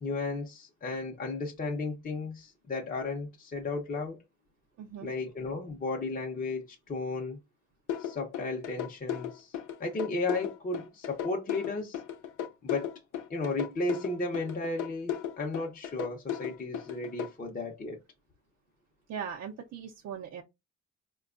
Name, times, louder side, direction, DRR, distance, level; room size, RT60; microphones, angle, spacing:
voice 1, 0.0-4.2 5.0-7.4 8.0-12.0 12.6-12.9 13.3-18.0, left 3 dB, 30° left, 0.7 m, -34 dB
voice 2, 4.8-5.1 19.1-20.4, right 7 dB, 60° right, 0.6 m, -39 dB
sound 1, 7.9-17.3, left 9 dB, 80° left, 0.6 m, -35 dB
4.2 x 2.3 x 2.4 m
cardioid pair, 90°, 30 cm